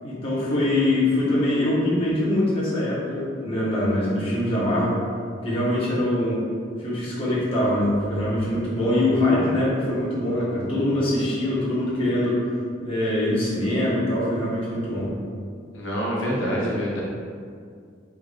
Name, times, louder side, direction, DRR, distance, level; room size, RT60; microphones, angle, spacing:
voice 1, 0.0-5.0 5.4-6.4 6.8-12.4 12.8-15.1, left 1 dB, 30° left, -9 dB, 1.1 m, -23 dB
voice 2, 15.7-17.0, equal, 85° left, -6 dB, 0.9 m, -26 dB
4.8 x 3.4 x 2.5 m, 2.2 s
head